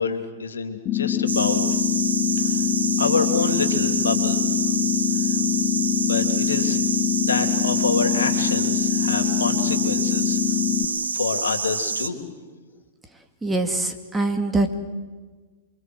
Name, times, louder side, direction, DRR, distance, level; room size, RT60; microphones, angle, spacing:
voice 1, 0.0-1.6 2.4-2.7 3.0-4.6 5.1-5.4 6.0-6.8 7.2-10.6 11.1-12.2, left 5 dB, 80° left, 8 dB, 3.0 m, -27 dB
sound 1, 0.9-10.9, left 10 dB, 35° left, 2.1 m, -24 dB
sound 2, 1.3-12.1, right 5 dB, 85° right, 1.5 m, -27 dB
voice 2, 13.4-14.7, right 2 dB, 10° right, 6 dB, 2.3 m, -23 dB
28.0 x 24.5 x 8.0 m, 1.4 s
hypercardioid pair, 110°, 0 cm